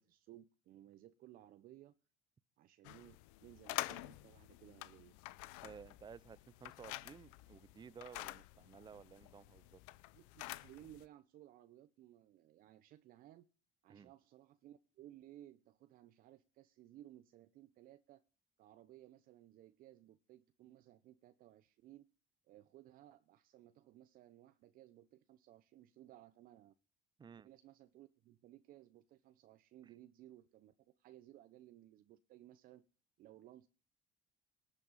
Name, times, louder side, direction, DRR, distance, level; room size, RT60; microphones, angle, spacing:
voice 1, 0.0-1.9 2.6-5.2 10.1-13.5 13.8-18.2 18.6-22.1 22.5-26.7 27.3-32.8 33.2-33.7, right 13 dB, 60° right, 0.9 m, -60 dB
sound 1, 2.8-11.0, left 20 dB, 85° left, 0.7 m, -48 dB
voice 2, 5.6-9.8 13.9-14.1 27.2-27.5 29.8-29.9, right 6 dB, 25° right, 0.6 m, -55 dB
19.0 x 7.7 x 5.6 m
supercardioid pair, 80°, 16 cm